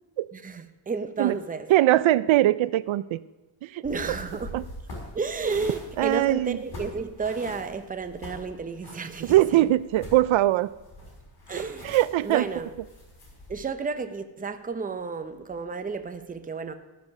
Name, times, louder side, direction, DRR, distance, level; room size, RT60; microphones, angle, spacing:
voice 1, 0.3-1.7 3.8-4.5 5.1-9.3 11.5-11.9 12.2-12.7 13.5-16.7, right 4 dB, 20° right, 0.6 m, -32 dB
voice 2, 1.7-3.2 3.6-3.8 4.5-4.6 6.0-6.6 9.2-10.7 11.8-12.5, right 15 dB, 80° right, 0.5 m, -21 dB
sound 1, 3.8-13.6, left 1 dB, 55° left, 5.6 m, -43 dB
14.0 x 9.7 x 6.4 m
wide cardioid pair, 180°, 46 cm